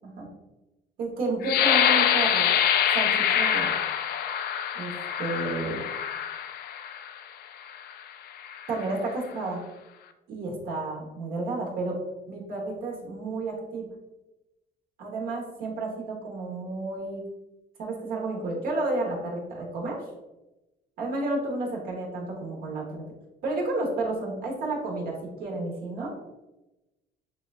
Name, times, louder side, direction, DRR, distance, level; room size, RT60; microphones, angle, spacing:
voice 1, 1.0-2.5 2.9-3.7 4.7-4.9 5.2-5.8 8.7-9.6 10.3-12.0 12.3-13.9 15.0-17.3 17.8-20.0 21.0-23.0 23.4-26.1, right 2 dB, 60° right, -1 dB, 1.3 m, -31 dB
sound 1, 1.4-7.1 7.7-7.9 8.4-8.8, left 9 dB, 65° left, 0.4 m, -25 dB
6.6 x 2.4 x 2.5 m, 1.0 s
cardioid pair, 110°, 17 cm